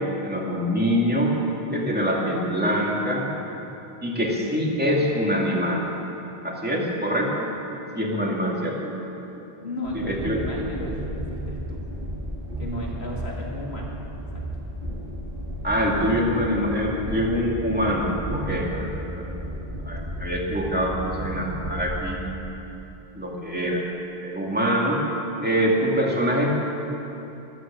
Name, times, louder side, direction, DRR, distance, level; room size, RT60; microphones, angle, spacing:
voice 1, 0.2-1.3 1.7-3.3 4.0-5.9 6.4-7.5 7.9-8.9 9.9-10.4 15.6-19.4 19.8-22.2 23.2-23.8 24.2-25.0 25.4-26.5, equal, 10° right, -3 dB, 2.4 m, -24 dB
voice 2, 9.6-11.8 12.6-13.9 14.3-14.4, left 1 dB, 80° left, -3 dB, 2.8 m, -34 dB
Train, 9.8-22.1, equal, 60° right, 3.0 m, -33 dB
14.5 x 13.0 x 7.5 m, 3.0 s
omnidirectional pair, 1.1 m